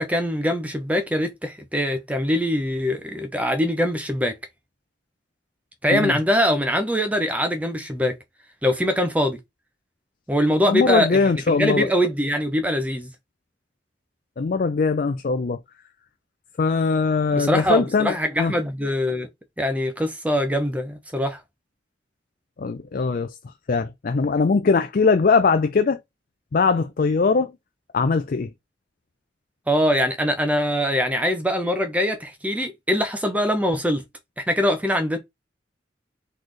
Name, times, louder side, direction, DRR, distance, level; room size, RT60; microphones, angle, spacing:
voice 1, 0.0-4.4 5.8-8.1 8.6-9.4 10.3-13.1 17.3-19.3 19.6-21.4 29.7-34.0 34.4-35.2, equal, 10° right, 0.6 m, -23 dB
voice 2, 10.6-11.9 14.4-15.6 16.6-18.5 22.6-26.0 26.5-27.5 27.9-28.5, left 4 dB, 50° left, 0.4 m, -21 dB
4.1 x 3.2 x 3.9 m
head